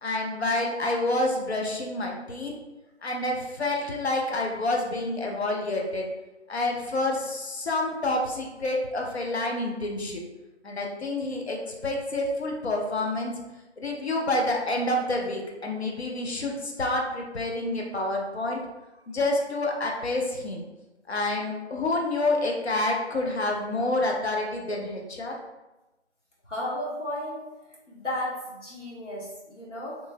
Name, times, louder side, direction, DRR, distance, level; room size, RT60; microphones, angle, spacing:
voice 1, 0.0-2.5 3.0-6.1 6.5-10.2 10.6-13.3 13.8-18.6 19.1-20.6 21.1-25.4, left 2 dB, 60° left, 0 dB, 0.6 m, -28 dB
voice 2, 26.5-27.4 27.9-30.0, left 1 dB, 80° left, -5 dB, 1.3 m, -33 dB
3.0 x 2.5 x 2.2 m, 1.0 s
figure-of-eight pair, 180°, 36 cm